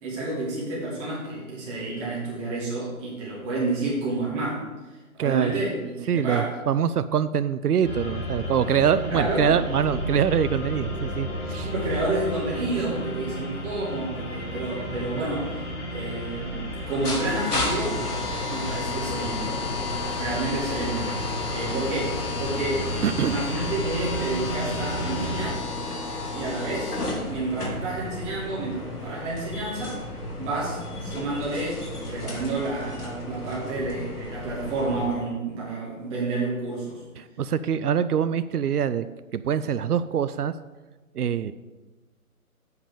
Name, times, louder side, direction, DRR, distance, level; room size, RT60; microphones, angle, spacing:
voice 1, 0.0-6.5 9.1-9.5 11.6-15.5 15.9-18.0 18.5-19.5 20.0-21.1 21.5-25.6 26.3-27.0 27.2-30.0 30.4-37.0, right 2 dB, 10° right, -7 dB, 2.3 m, -30 dB
voice 2, 5.2-5.6 6.1-11.7 23.0-23.4 37.2-39.1 39.3-40.5 41.1-41.5, right 8 dB, 85° right, 13 dB, 0.6 m, -24 dB
sound 1, 7.8-25.5, equal, 20° left, 1.0 m, -32 dB
sound 2, 16.8-35.1, left 2 dB, 90° left, 2.5 m, -32 dB
8.0 x 5.6 x 6.8 m, 1.2 s
hypercardioid pair, 160°, 44 cm